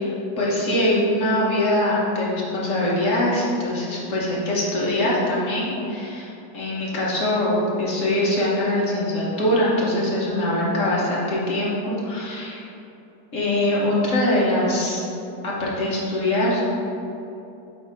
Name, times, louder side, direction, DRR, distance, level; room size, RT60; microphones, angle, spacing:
voice 1, 0.0-12.7 13.3-15.0 15.4-16.7, left 1 dB, 50° left, -5 dB, 1.4 m, -23 dB
7.7 x 2.8 x 5.0 m, 2.8 s
omnidirectional pair, 1.9 m